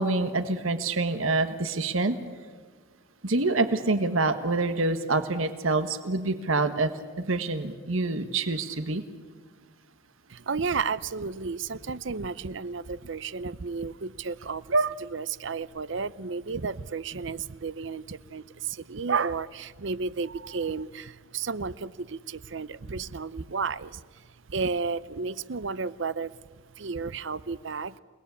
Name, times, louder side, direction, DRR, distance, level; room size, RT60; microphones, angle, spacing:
voice 1, 0.0-2.2 3.2-6.9 7.2-9.0, right 3 dB, 85° right, 9 dB, 1.6 m, -26 dB
voice 2, 10.3-26.3 26.8-28.0, right 4 dB, 60° right, 17 dB, 0.7 m, -32 dB
29.5 x 19.5 x 8.4 m, 1.5 s
head